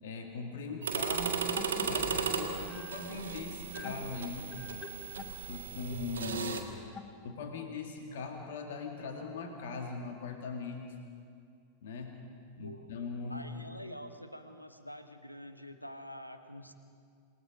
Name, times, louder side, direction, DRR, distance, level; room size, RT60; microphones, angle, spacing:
voice 1, 0.0-1.5 1.8-4.5 5.5-6.7 7.2-11.0 11.8-12.2 12.6-13.4, left 4 dB, 60° left, 3 dB, 2.1 m, -40 dB
sound 1, 0.8-6.6, right 6 dB, 65° right, 1.8 m, -36 dB
sound 2, 1.5-7.7, left 8 dB, 25° left, 0.8 m, -48 dB
voice 2, 13.3-16.7, equal, 90° left, 8 dB, 1.2 m, -46 dB
27.5 x 19.5 x 5.2 m, 2.2 s
figure-of-eight pair, 90°, 0 cm